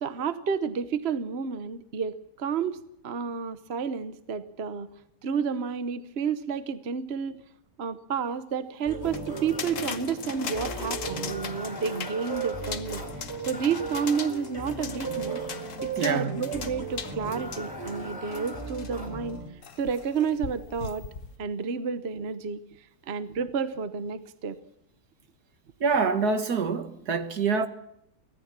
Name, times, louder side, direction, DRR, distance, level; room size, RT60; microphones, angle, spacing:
voice 1, 0.0-4.9 5.2-7.4 7.8-13.0 13.5-15.4 15.8-19.4 19.8-21.0 21.4-22.6 23.1-24.6, right 6 dB, 45° right, 1.1 m, -30 dB
sound 1, 8.8-19.5, right 3 dB, 10° left, 4.3 m, -36 dB
sound 2, 9.0-19.0 19.6-21.4, left 6 dB, 50° left, 1.4 m, -39 dB
voice 2, 16.0-16.4 25.8-27.7, right 5 dB, 65° right, 2.0 m, -25 dB
24.5 x 17.0 x 7.4 m
omnidirectional pair, 1.8 m